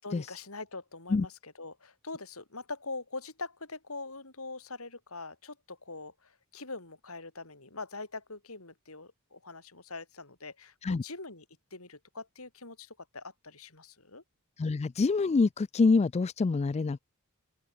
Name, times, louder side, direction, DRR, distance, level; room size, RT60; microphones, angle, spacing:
voice 1, 0.0-11.5 11.7-14.2, left 3 dB, 75° left, 7.2 m, -43 dB
voice 2, 14.6-17.0, left 4 dB, 30° left, 0.3 m, -26 dB
open air
head